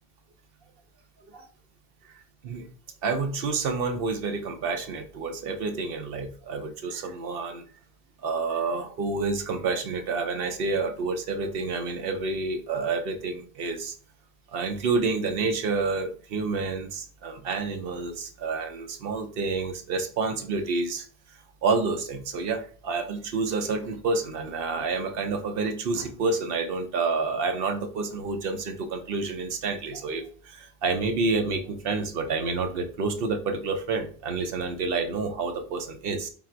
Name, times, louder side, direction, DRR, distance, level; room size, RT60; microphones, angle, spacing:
voice 1, 3.0-7.6 8.2-13.9 14.5-21.1 21.6-36.3, right 4 dB, 65° right, 7 dB, 0.8 m, -29 dB
3.8 x 2.4 x 4.4 m, 0.42 s
omnidirectional pair, 1.1 m